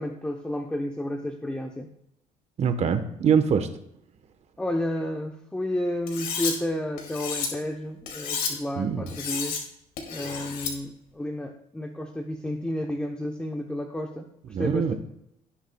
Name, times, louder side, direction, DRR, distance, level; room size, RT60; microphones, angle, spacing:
voice 1, 0.0-1.9 4.6-9.7 10.1-14.9, left 1 dB, 5° left, 4 dB, 0.7 m, -31 dB
voice 2, 2.6-3.7 8.8-9.1 14.5-14.9, right 7 dB, 45° right, 9 dB, 1.1 m, -23 dB
Cutlery silverware, 6.1-6.5 7.0-7.5 8.1-8.5 9.1-9.6 10.0-10.7, left 6 dB, 75° left, 2.4 m, -31 dB
17.5 x 7.3 x 2.3 m, 0.80 s
cardioid pair, 115°, 15 cm